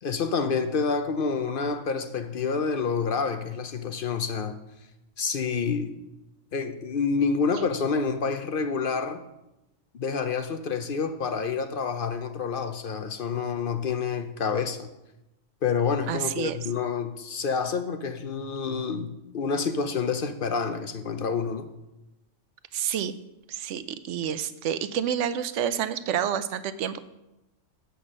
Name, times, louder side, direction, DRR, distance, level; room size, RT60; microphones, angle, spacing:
voice 1, 0.0-4.6 5.2-5.9 6.5-9.2 9.9-14.9 15.6-21.7, left 5 dB, 55° left, 0.6 m, -28 dB
voice 2, 16.1-16.6 22.7-23.1 23.5-27.0, right 9 dB, 70° right, 0.9 m, -29 dB
8.1 x 5.9 x 7.3 m
omnidirectional pair, 1.4 m